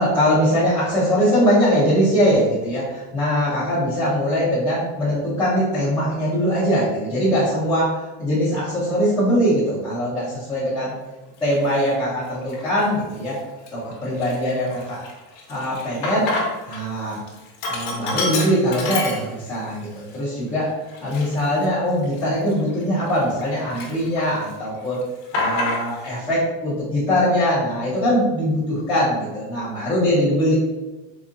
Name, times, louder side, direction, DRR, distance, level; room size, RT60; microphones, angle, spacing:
voice 1, 0.0-10.9 11.4-13.4 13.7-15.0 15.5-16.4 16.7-17.2 17.7-25.0 25.3-28.6 28.9-30.5, equal, 10° left, -12 dB, 0.3 m, -21 dB
Sink (filling or washing), 11.5-11.7 12.3-12.9 13.3-13.4 13.7-16.8 17.1-19.7 20.1-20.2 20.9-23.4 23.7-24.5 24.8-26.1, left 2 dB, 65° left, 0.9 m, -28 dB
3.9 x 2.6 x 2.4 m, 1.1 s
cardioid pair, 165°, 50 cm